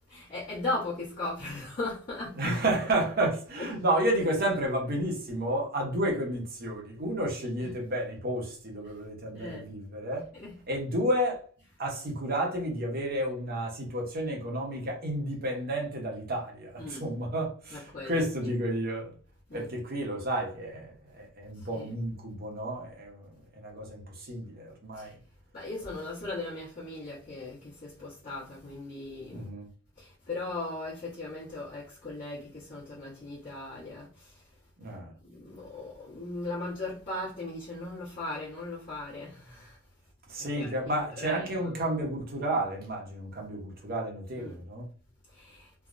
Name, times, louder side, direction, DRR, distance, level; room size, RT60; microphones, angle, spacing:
voice 1, 0.1-2.4 3.6-3.7 7.6-7.7 8.8-8.9 9.3-9.7 10.3-10.5 16.8-17.1 17.7-18.2 19.5-19.7 21.6-21.9 24.9-25.1 25.5-29.5 30.0-34.4 34.8-35.0 35.2-39.8 40.5-41.7 44.3-44.6 45.3-45.7, left 2 dB, 45° left, 1.2 m, -38 dB
voice 2, 2.3-10.3 10.7-11.4 11.8-19.1 19.5-23.3 23.6-25.1 29.3-29.7 34.8-35.1 40.3-44.9, right 1 dB, 50° right, 0.9 m, -31 dB
3.3 x 2.2 x 2.5 m
head